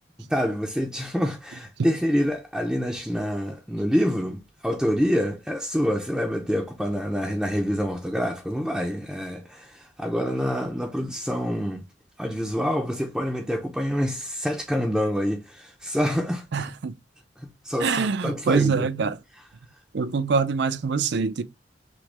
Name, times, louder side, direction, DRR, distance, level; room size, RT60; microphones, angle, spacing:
voice 1, 0.2-11.9 12.2-16.7 17.4-18.9, equal, ahead, 0.5 m, -27 dB
voice 2, 16.5-16.9 17.8-19.2 19.9-21.4, right 5 dB, 65° right, 0.5 m, -24 dB
6.1 x 2.2 x 3.3 m
head